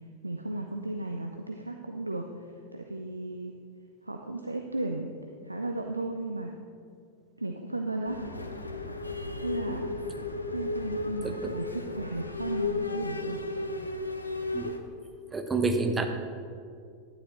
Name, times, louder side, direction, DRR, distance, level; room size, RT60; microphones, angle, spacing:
voice 1, 0.2-3.5 4.0-5.1 5.4-6.5 7.4-8.2 9.4-9.9 10.5-13.4, right 2 dB, 85° right, 4 dB, 0.5 m, -35 dB
sound 1, 8.1-14.8, left 3 dB, 80° left, 0.7 m, -34 dB
voice 2, 15.3-16.1, right 3 dB, 15° right, 5 dB, 0.9 m, -28 dB
12.0 x 10.0 x 3.1 m, 2.3 s
figure-of-eight pair, 90°, 0 cm